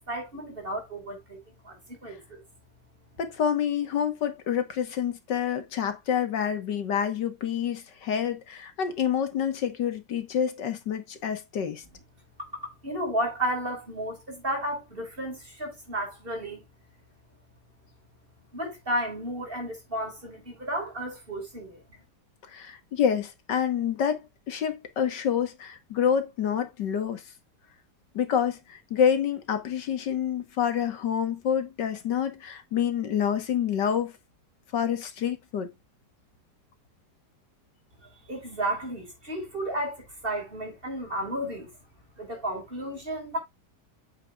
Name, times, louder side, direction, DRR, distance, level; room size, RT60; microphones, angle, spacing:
voice 1, 0.1-1.4 1.6-2.4 12.4-16.7 18.5-22.0 38.0-41.8 42.2-43.4, right 1 dB, 30° right, 5.2 m, -33 dB
voice 2, 3.2-11.8 22.5-27.2 28.2-34.1 34.7-35.7, left 8 dB, 80° left, 2.0 m, -27 dB
8.4 x 8.3 x 2.4 m
omnidirectional pair, 1.9 m